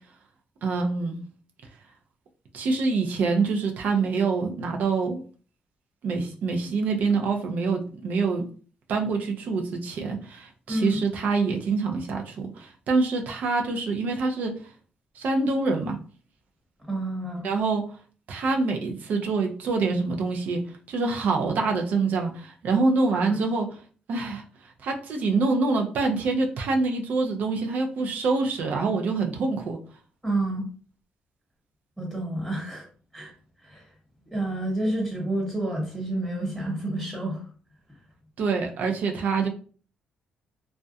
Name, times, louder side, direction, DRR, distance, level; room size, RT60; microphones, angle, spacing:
voice 1, 0.6-1.2 2.5-5.2 6.0-8.5 8.9-14.5 15.1-16.0 17.4-17.9 18.3-20.6 20.9-23.7 24.1-29.8 38.4-39.5, right 4 dB, 70° right, 3 dB, 0.5 m, -25 dB
voice 2, 10.7-11.0 16.9-17.5 23.1-23.4 30.2-30.7 32.0-32.8 33.1-33.3 33.6-33.8 34.3-37.4 39.3-39.4, right 1 dB, 10° right, -2 dB, 1.2 m, -29 dB
2.4 x 2.1 x 2.6 m, 0.41 s
cardioid pair, 75°, 3 cm